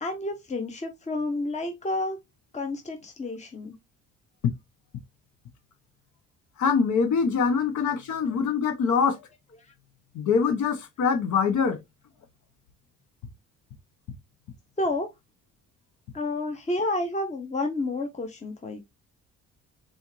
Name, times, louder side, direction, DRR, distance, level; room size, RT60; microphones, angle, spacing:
voice 1, 0.0-2.2 2.5-3.7 8.2-8.4 9.6-9.7 14.8-15.1 16.1-18.8, left 2 dB, 25° left, 0.9 m, -30 dB
voice 2, 6.6-9.2 10.1-11.8, left 6 dB, 70° left, 1.1 m, -24 dB
4.2 x 3.5 x 3.1 m
cardioid pair, 90°, 30 cm